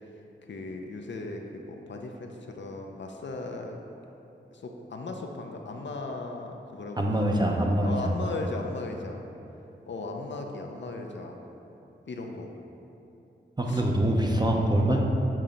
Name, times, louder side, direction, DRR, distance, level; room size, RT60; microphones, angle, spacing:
voice 1, 0.5-3.8 4.5-7.3 7.8-9.2 9.9-11.4 12.1-12.5 13.7-13.8 14.9-15.0, left 2 dB, 65° left, 2 dB, 0.6 m, -37 dB
voice 2, 7.0-8.1 13.6-15.0, right 1 dB, 20° right, 0 dB, 0.7 m, -24 dB
7.3 x 2.8 x 5.0 m, 2.8 s
cardioid pair, 45°, 20 cm